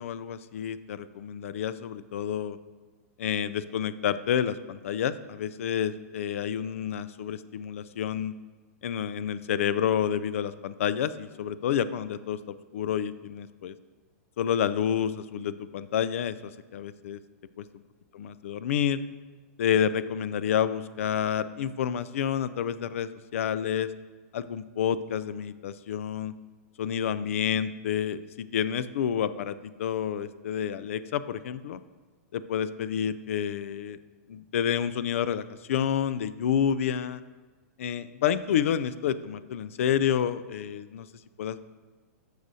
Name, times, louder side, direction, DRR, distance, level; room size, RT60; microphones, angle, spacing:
voice 1, 0.0-2.6 3.2-8.3 8.8-13.7 14.4-17.2 17.6-17.7 18.1-19.0 19.6-23.9 24.3-26.3 26.8-31.8 32.3-34.0 34.3-37.2 37.8-41.1 41.4-41.7, left 9 dB, 60° left, 15 dB, 0.3 m, -29 dB
12.0 x 6.5 x 2.7 m, 1.3 s
supercardioid pair, 175°, 8 cm